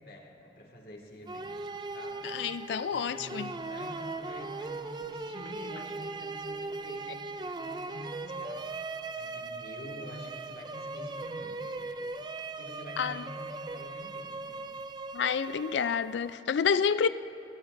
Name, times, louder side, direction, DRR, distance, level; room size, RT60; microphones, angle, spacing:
voice 1, 0.0-1.6 1.9-2.3 2.9-8.8 9.1-12.1 12.6-14.7, left 1 dB, 60° left, 1.9 m, -47 dB
sound 1, 1.3-16.3, right 3 dB, 25° right, 0.3 m, -39 dB
voice 2, 2.2-3.5 13.0-13.2 15.1-17.1, left 6 dB, 85° left, 0.4 m, -29 dB
22.0 x 17.5 x 2.6 m
head